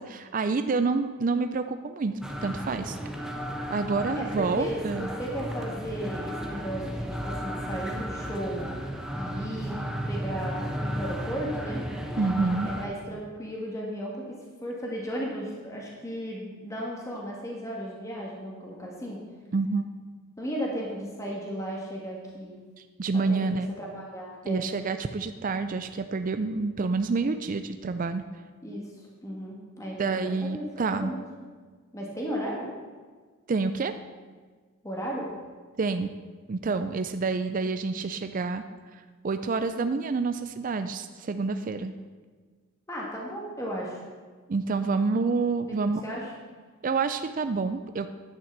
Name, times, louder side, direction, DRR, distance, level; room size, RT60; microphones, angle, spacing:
voice 1, 0.0-2.1 2.4-3.0 3.7-5.1 12.2-12.7 19.5-19.9 23.0-23.7 24.5-28.2 30.0-31.1 33.5-33.9 35.8-36.1 36.5-38.6 38.9-41.9 44.5-46.0 46.8-48.1, right 4 dB, 40° right, 9 dB, 0.4 m, -28 dB
sound 1, 2.2-12.9, equal, 5° right, 0.9 m, -34 dB
voice 2, 4.2-8.6 9.2-9.8 10.1-11.8 12.6-19.2 20.4-22.6 23.3-24.7 28.6-30.7 30.9-31.3 31.9-32.7 34.8-35.3 42.9-44.0 45.7-45.8 46.0-46.2, equal, 15° left, -3 dB, 1.6 m, -35 dB
10.5 x 6.0 x 7.2 m, 1.5 s
head